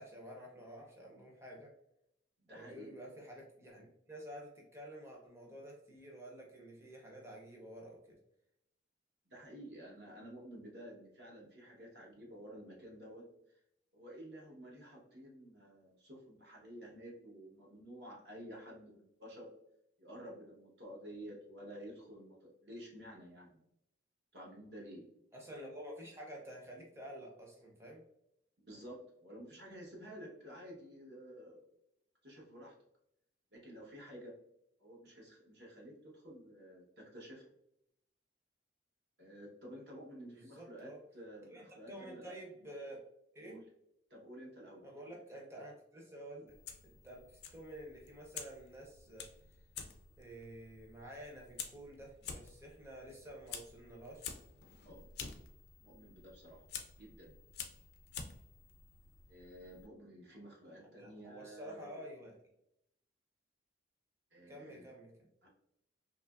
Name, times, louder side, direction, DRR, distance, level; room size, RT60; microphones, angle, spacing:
voice 1, 0.0-1.7 2.5-8.2 25.3-28.0 40.2-41.0 41.5-43.0 43.3-43.6 44.8-46.5 47.0-49.3 50.2-54.3 61.0-62.4 64.5-65.1, right 1 dB, 15° right, -1 dB, 0.6 m, -50 dB
voice 2, 2.4-2.9 9.3-13.6 13.9-19.5 20.0-23.6 24.3-25.0 28.6-31.6 32.2-32.7 33.5-34.3 34.8-37.4 39.2-42.4 43.4-43.6 44.1-44.8 54.8-55.1 55.8-56.6 56.9-57.4 59.3-62.0 64.3-64.9 65.4-65.5, equal, 60° right, -2 dB, 0.9 m, -52 dB
Fire, 46.5-59.9, left 6 dB, 55° left, 0.3 m, -50 dB
2.8 x 2.4 x 2.3 m, 0.79 s
head